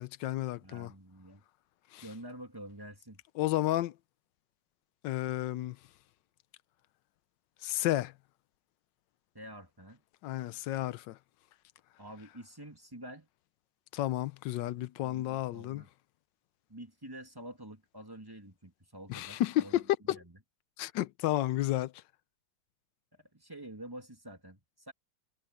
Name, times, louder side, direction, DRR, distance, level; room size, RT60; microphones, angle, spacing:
voice 1, 0.0-0.9 1.9-2.0 3.4-3.9 5.0-5.8 7.6-8.1 10.2-11.2 13.9-15.8 19.1-19.8 20.1-20.2 20.8-21.9, left 14 dB, 90° left, 1.3 m, -32 dB
voice 2, 0.6-1.4 2.0-3.2 9.3-10.0 12.0-13.3 14.6-15.9 16.7-20.4 23.1-24.9, right 1 dB, 10° right, 2.6 m, -48 dB
omnidirectional pair, 1.9 m